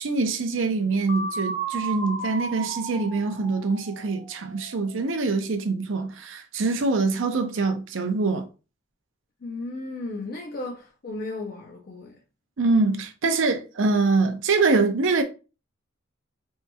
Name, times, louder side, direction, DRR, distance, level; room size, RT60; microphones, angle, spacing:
voice 1, 0.0-8.5 12.6-15.2, right 3 dB, 70° right, 0.5 m, -24 dB
sound 1, 1.1-4.9, right 3 dB, 85° right, 1.0 m, -34 dB
voice 2, 9.4-12.2, left 2 dB, 50° left, 0.5 m, -35 dB
4.4 x 2.7 x 2.2 m
head